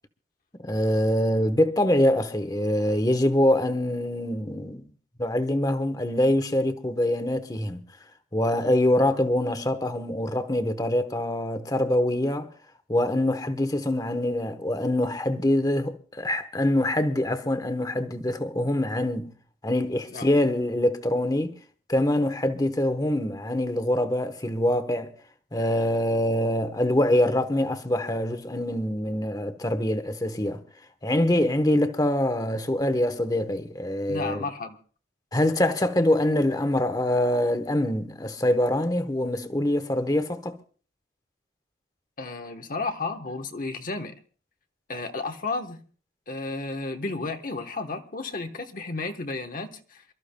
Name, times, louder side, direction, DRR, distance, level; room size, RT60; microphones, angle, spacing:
voice 1, 0.6-4.8 5.2-7.8 8.3-12.5 12.9-19.3 19.6-21.5 21.9-25.1 25.5-30.6 31.0-34.4 35.3-40.6, left 1 dB, 20° left, 1.0 m, -24 dB
voice 2, 34.1-34.8 42.2-44.1 44.9-45.8 46.3-50.0, left 3 dB, 50° left, 1.0 m, -32 dB
28.0 x 13.5 x 2.2 m
head